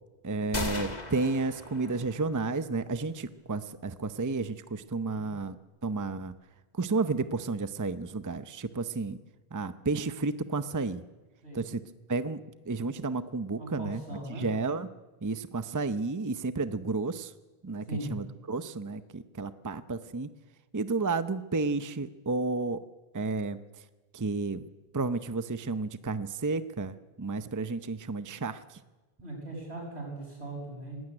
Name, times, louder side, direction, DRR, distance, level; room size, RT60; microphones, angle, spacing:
voice 1, 0.2-5.6 5.8-6.3 6.8-9.2 9.5-11.0 11.5-11.8 12.1-12.4 12.7-14.0 14.4-14.9 15.2-17.3 17.6-20.3 20.7-22.8 23.1-23.6 24.1-24.6 24.9-28.6, right 3 dB, 20° right, 11 dB, 0.6 m, -31 dB
sound 1, 0.5-2.4, left 2 dB, 40° left, 2.0 m, -37 dB
voice 2, 13.6-14.5 17.9-18.1 29.2-31.0, right 2 dB, 85° right, 1 dB, 7.3 m, -39 dB
19.0 x 16.0 x 9.8 m, 1.2 s
omnidirectional pair, 1.1 m